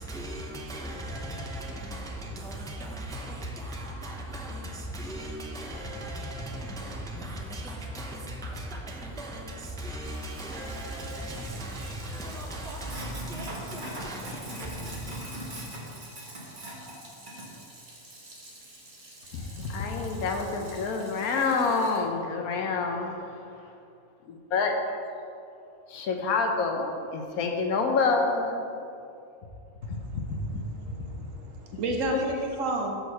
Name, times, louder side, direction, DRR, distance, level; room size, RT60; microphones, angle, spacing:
voice 1, 0.0-15.1, right 1 dB, 5° left, -1 dB, 0.4 m, -37 dB
Sink (filling or washing), 10.0-22.0, right 1 dB, 35° right, 1.3 m, -42 dB
voice 2, 19.3-23.5 24.3-24.7 25.9-28.7 29.9-30.4 32.1-32.2, left 4 dB, 85° left, 3 dB, 1.3 m, -28 dB
voice 3, 29.8-30.2 30.5-33.0, right 2 dB, 65° right, 2 dB, 1.2 m, -32 dB
6.3 x 5.3 x 5.7 m, 2.6 s
omnidirectional pair, 1.5 m